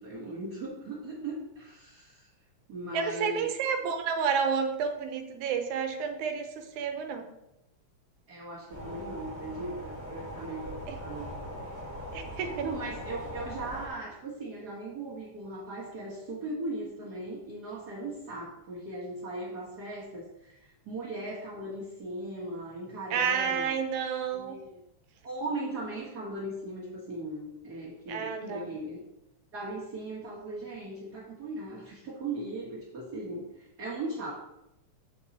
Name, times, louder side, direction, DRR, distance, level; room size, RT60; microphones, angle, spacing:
voice 1, 0.0-2.3 2.7-3.5 8.3-11.3 12.6-23.8 24.3-24.8 25.2-29.0 29.5-34.3, right 2 dB, 45° right, -7 dB, 1.5 m, -38 dB
voice 2, 2.9-7.3 10.9-11.0 12.1-12.7 23.1-24.6 28.1-28.7, right 6 dB, 85° right, 6 dB, 2.2 m, -30 dB
sound 1, 8.7-13.9, equal, 15° right, 0.5 m, -40 dB
8.6 x 3.8 x 4.1 m, 0.87 s
omnidirectional pair, 3.3 m